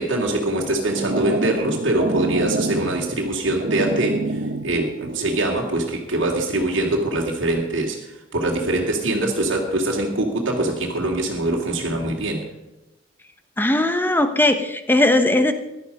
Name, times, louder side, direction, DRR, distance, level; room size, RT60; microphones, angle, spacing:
voice 1, 0.0-12.4, right 2 dB, 90° right, -1 dB, 2.4 m, -23 dB
sound 1, 0.6-5.6, right 2 dB, 50° right, 0.8 m, -28 dB
voice 2, 13.6-15.5, left 1 dB, 10° left, 9 dB, 1.0 m, -18 dB
15.5 x 12.0 x 5.3 m, 0.98 s
head